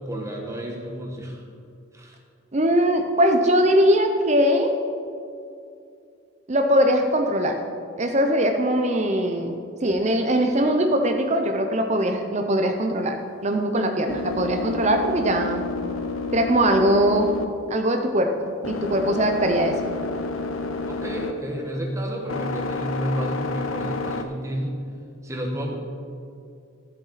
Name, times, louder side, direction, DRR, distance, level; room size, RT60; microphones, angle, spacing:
voice 1, 0.0-1.4 1.9-2.2 20.9-24.8 25.2-25.8, equal, 15° right, 1 dB, 1.2 m, -30 dB
voice 2, 2.5-4.8 6.5-7.5 8.0-9.5 9.8-13.2 13.4-15.6 16.3-17.3 17.7-19.7, equal, 35° right, 4 dB, 0.6 m, -21 dB
sound 1, 13.1-24.2, left 3 dB, 80° left, 0.7 m, -31 dB
14.0 x 7.7 x 4.2 m, 2.4 s
head